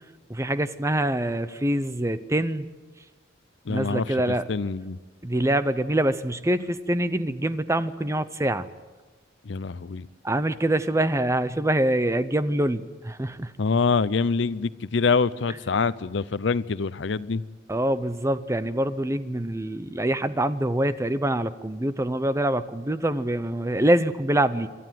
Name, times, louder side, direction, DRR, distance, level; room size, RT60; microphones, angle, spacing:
voice 1, 0.3-2.7 3.7-4.5 5.2-8.7 10.2-13.5 17.7-24.7, right 1 dB, 15° right, 0.7 m, -25 dB
voice 2, 3.7-4.0 4.5-5.0 9.5-10.1 13.6-17.4, left 4 dB, 65° left, 0.6 m, -25 dB
28.0 x 12.5 x 9.3 m
head